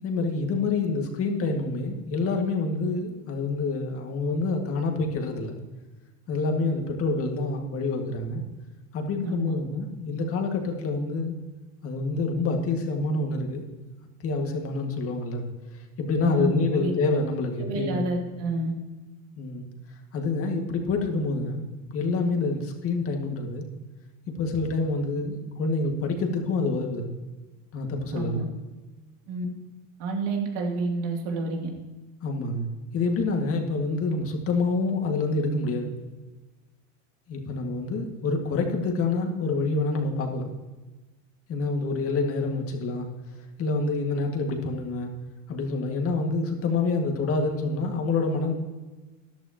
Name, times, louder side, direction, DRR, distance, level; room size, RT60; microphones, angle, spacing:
voice 1, 0.0-5.6 6.3-8.4 8.9-11.4 11.8-13.7 14.2-18.1 19.4-19.7 20.1-21.6 21.9-23.6 24.3-27.1 27.7-28.5 32.2-32.7 32.9-36.0 37.3-40.5 41.5-43.1 43.6-45.1 45.5-48.5, left 3 dB, 40° left, 3 dB, 2.0 m, -27 dB
voice 2, 9.2-9.5 16.2-16.9 17.6-18.7 28.1-28.4 29.3-29.5 30.0-31.7, right 2 dB, 75° right, 1 dB, 2.9 m, -29 dB
14.0 x 12.0 x 3.0 m, 1.2 s
cardioid pair, 140°, 35 cm